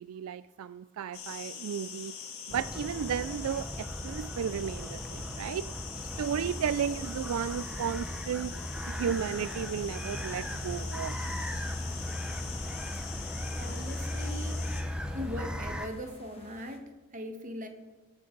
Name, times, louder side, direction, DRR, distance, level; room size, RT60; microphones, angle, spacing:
voice 1, 0.0-2.1 2.5-5.7 6.2-8.5 8.8-11.2, right 8 dB, 75° right, 16 dB, 0.3 m, -34 dB
sound 1, 1.1-14.8, left 7 dB, 80° left, 3.2 m, -43 dB
sound 2, 2.5-15.9, equal, 5° right, 0.8 m, -37 dB
sound 3, 6.2-16.8, left 3 dB, 25° left, 1.3 m, -55 dB
voice 2, 13.6-14.6 15.1-17.7, equal, 35° right, 5 dB, 1.4 m, -40 dB
18.0 x 13.5 x 3.9 m, 1.3 s
head